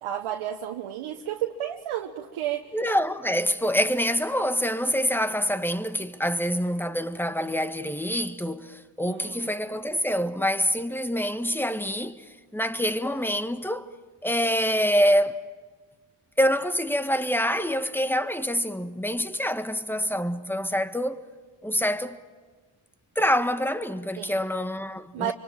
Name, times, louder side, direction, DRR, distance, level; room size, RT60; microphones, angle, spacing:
voice 1, 0.0-2.7 9.0-9.5 24.2-24.4 25.1-25.3, right 11 dB, 80° right, 1.4 m, -32 dB
voice 2, 2.7-13.9 14.2-15.4 16.4-21.2 21.6-22.2 23.1-25.3, equal, 5° left, 1.6 m, -26 dB
26.0 x 25.0 x 9.1 m
supercardioid pair, 50°, 49 cm